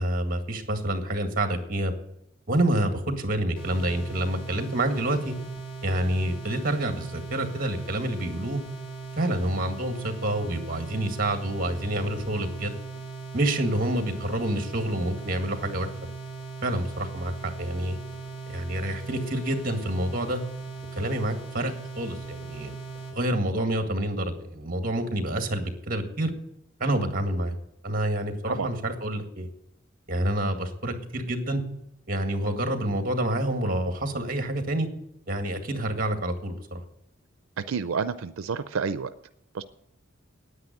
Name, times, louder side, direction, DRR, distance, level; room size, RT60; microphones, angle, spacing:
voice 1, 0.0-1.9 2.5-5.3 5.8-8.6 9.2-12.7 13.3-15.9 16.6-18.0 18.5-20.4 20.9-22.7 23.1-26.3 26.8-27.6 27.8-29.5 30.1-31.6 32.1-34.9 35.3-36.8, right 1 dB, 45° right, 6 dB, 1.9 m, -28 dB
sound 1, 3.5-23.2, right 4 dB, 25° left, 4.8 m, -39 dB
voice 2, 37.7-39.1 39.5-39.6, right 5 dB, 90° right, 12 dB, 0.5 m, -29 dB
9.7 x 9.3 x 9.0 m, 0.78 s
head